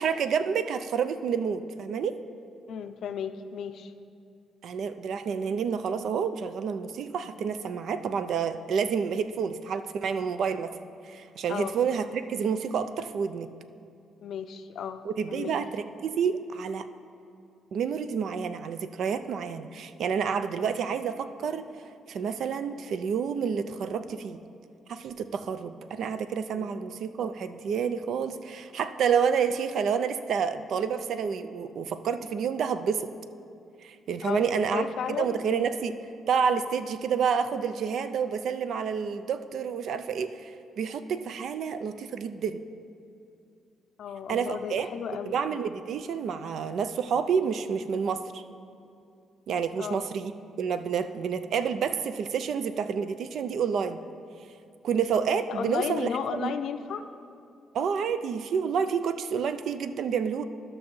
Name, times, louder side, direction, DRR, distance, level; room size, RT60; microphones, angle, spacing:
voice 1, 0.0-2.2 4.6-10.8 11.0-13.5 15.0-16.9 17.7-21.6 22.1-24.4 24.9-33.1 33.8-34.9 35.2-36.0 36.3-42.6 44.3-44.9 45.3-48.4 49.5-50.3 50.6-54.0 54.8-56.5 57.7-60.4, right 6 dB, 70° right, 11 dB, 0.4 m, -29 dB
voice 2, 2.7-3.9 11.5-11.7 14.2-15.0 15.3-15.6 26.5-26.8 34.2-34.4 34.7-35.7 44.0-45.4 49.8-50.1 55.5-57.1, left 7 dB, 70° left, 9 dB, 0.4 m, -34 dB
13.5 x 6.1 x 3.1 m, 2.5 s
cardioid pair, 90°, 0 cm